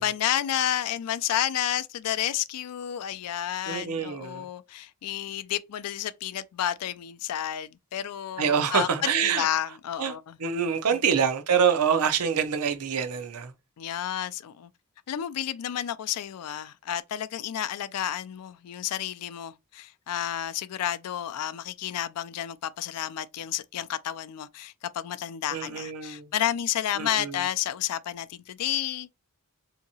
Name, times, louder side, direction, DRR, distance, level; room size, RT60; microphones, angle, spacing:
voice 1, 0.0-10.4 13.8-14.7 15.1-29.1, left 11 dB, 90° left, 0.4 m, -31 dB
voice 2, 3.6-4.5 8.4-9.5 10.0-10.1 10.4-13.5 25.5-26.3 27.0-27.4, right 7 dB, 80° right, 0.6 m, -26 dB
3.6 x 2.8 x 2.7 m
head